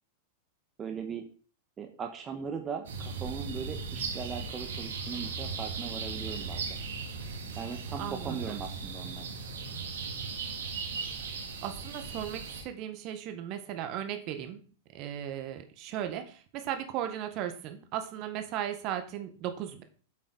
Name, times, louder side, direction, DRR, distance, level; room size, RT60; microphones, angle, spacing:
voice 1, 0.8-1.2 1.8-6.8 7.6-9.3, right 6 dB, 25° right, 4 dB, 1.4 m, -39 dB
sound 1, 2.8-12.6, right 4 dB, 70° right, 2.6 m, -37 dB
voice 2, 8.0-8.6 11.6-14.6 14.9-19.8, right 10 dB, 45° right, 8 dB, 1.6 m, -36 dB
8.3 x 7.8 x 4.1 m, 0.40 s
hypercardioid pair, 95°, 0 cm